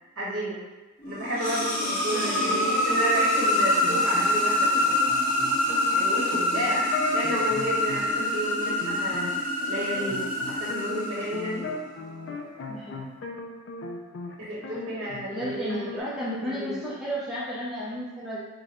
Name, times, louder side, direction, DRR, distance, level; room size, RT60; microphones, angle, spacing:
voice 1, 0.1-0.6 1.0-5.0 5.9-9.4 9.7-11.6 14.4-15.9 16.4-16.8, right 1 dB, 65° right, -7 dB, 1.2 m, -31 dB
sound 1, 1.0-11.8, left 1 dB, 35° left, 1.0 m, -26 dB
voice 2, 2.1-2.8 12.7-13.0 15.3-18.4, equal, ahead, -8 dB, 0.5 m, -33 dB
sound 2, 3.8-14.3 14.6-16.0, left 2 dB, 55° left, 0.4 m, -37 dB
4.8 x 2.2 x 2.9 m, 1.1 s
head